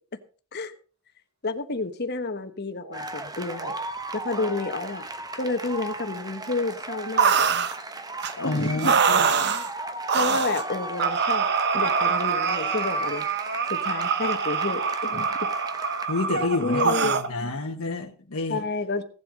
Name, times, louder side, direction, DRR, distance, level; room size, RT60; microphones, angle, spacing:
voice 1, 1.4-3.7 4.1-5.1 5.3-7.3 8.4-9.0 10.1-11.5 11.7-13.2 13.7-15.5 16.6-17.2 18.5-19.0, left 3 dB, 50° left, 9 dB, 1.2 m, -30 dB
sound 1, 2.0-2.1 2.8-3.0 3.5-3.8 4.3-4.6 5.3-5.6 6.4-6.5 7.2-7.7 8.3-8.4, right 1 dB, 85° right, 7.6 m, -42 dB
sound 2, 2.9-16.1, right 2 dB, 15° right, 1.0 m, -36 dB
sound 3, 7.2-7.7 8.2-8.3 8.8-9.7 10.1-10.6 11.0-17.3, right 6 dB, 50° right, 0.9 m, -24 dB
voice 2, 8.4-9.3 16.0-18.6, left 2 dB, 75° left, 3 dB, 1.3 m, -29 dB
16.5 x 7.8 x 5.2 m, 0.40 s
head